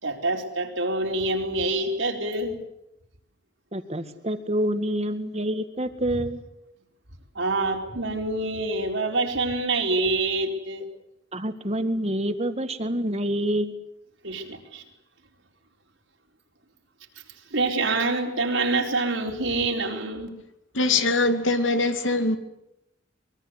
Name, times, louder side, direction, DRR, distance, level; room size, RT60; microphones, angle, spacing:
voice 1, 0.0-2.6 7.3-10.9 14.2-14.8 17.5-20.3, right 2 dB, 75° right, 2 dB, 4.4 m, -26 dB
voice 2, 3.7-6.4 11.3-13.7, right 1 dB, 35° right, 9 dB, 2.1 m, -27 dB
voice 3, 20.7-22.4, left 2 dB, 85° left, 8 dB, 2.7 m, -22 dB
24.5 x 22.5 x 8.3 m, 0.83 s
head